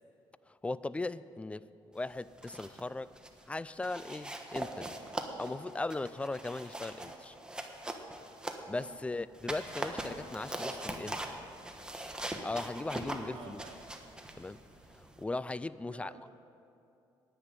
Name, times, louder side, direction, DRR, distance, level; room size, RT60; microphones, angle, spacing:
voice 1, 0.5-1.7 1.9-3.1 3.5-5.0 5.4-7.4 8.7-11.4 12.4-13.6 14.4-14.6 15.0-16.1, left 2 dB, 10° left, 17 dB, 0.3 m, -38 dB
sound 1, 2.2-2.8 3.1-3.4 3.8-8.9 9.3-15.2, right 1 dB, 10° right, 1.2 m, -41 dB
voice 2, 6.8-7.1 8.7-9.0 13.3-13.9 15.8-16.3, right 6 dB, 75° right, 2 dB, 1.7 m, -53 dB
10.0 x 9.9 x 8.9 m, 2.7 s
cardioid pair, 100°, 10 cm